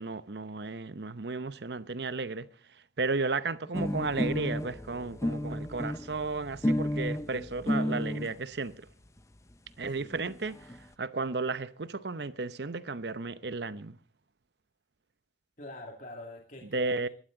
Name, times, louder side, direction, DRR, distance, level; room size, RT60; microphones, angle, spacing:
voice 1, 0.0-2.5 3.0-8.9 9.8-10.7 11.0-14.0 16.7-17.1, right 3 dB, 70° right, 0.8 m, -33 dB
sound 1, 3.7-8.3 9.2-9.3 9.5-9.6 9.9-10.0 10.1-10.8, left 1 dB, 15° left, 0.7 m, -32 dB
voice 2, 15.6-17.1, left 1 dB, 45° left, 2.4 m, -46 dB
21.5 x 12.5 x 3.9 m
head